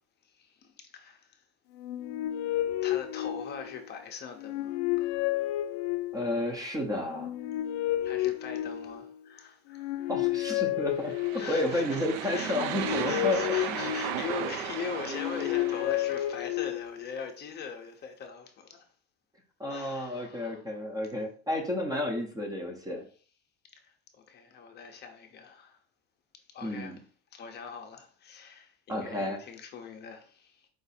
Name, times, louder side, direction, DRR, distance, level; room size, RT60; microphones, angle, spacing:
voice 1, 0.2-1.4 2.8-5.5 8.0-10.2 11.0-18.9 19.7-20.8 23.8-25.8 26.5-27.0 27.3-30.7, left 6 dB, 30° left, 0.6 m, -42 dB
sound 1, 1.7-3.9 4.4-6.4 7.1-9.2 9.7-11.7 12.4-14.5 15.0-17.0, left 14 dB, 80° left, 0.5 m, -31 dB
voice 2, 6.1-7.3 10.1-11.1 11.5-13.8 19.6-23.1 26.6-27.0 28.9-29.4, left 1 dB, 10° right, 0.6 m, -31 dB
sound 2, 11.0-16.4, right 9 dB, 75° right, 0.7 m, -36 dB
4.8 x 2.5 x 4.1 m
cardioid pair, 155°, 32 cm